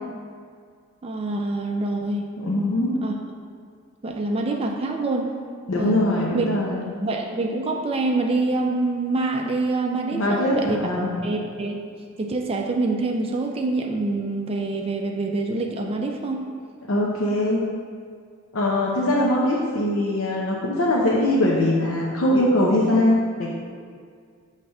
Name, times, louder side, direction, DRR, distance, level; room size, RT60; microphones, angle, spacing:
voice 1, 1.0-2.2 3.0-3.1 4.0-5.3 5.7-6.0 6.3-6.5 7.0-10.8 11.2-11.8 12.2-16.5, right 2 dB, 30° right, 1 dB, 0.4 m, -25 dB
voice 2, 2.4-3.0 5.7-6.9 10.1-10.6 10.8-11.1 16.9-17.6 18.5-23.5, left 1 dB, 75° left, -3 dB, 0.7 m, -21 dB
7.0 x 3.2 x 5.3 m, 2.1 s
head